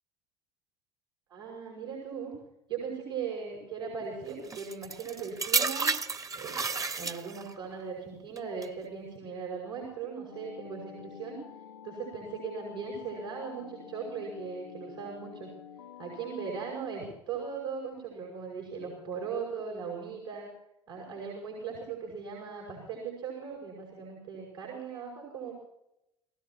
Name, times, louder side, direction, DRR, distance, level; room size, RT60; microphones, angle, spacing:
voice 1, 1.3-2.4 2.7-5.9 6.3-11.4 11.8-15.5 16.0-20.5 20.9-25.5, right 6 dB, 80° right, -2 dB, 5.9 m, -38 dB
sound 1, 4.5-7.6 8.4-8.7, right 4 dB, 25° right, 0.9 m, -31 dB
sound 2, 10.3-16.7, left 8 dB, 85° left, 1.3 m, -48 dB
29.0 x 16.5 x 3.0 m, 0.85 s
hypercardioid pair, 70°, 14 cm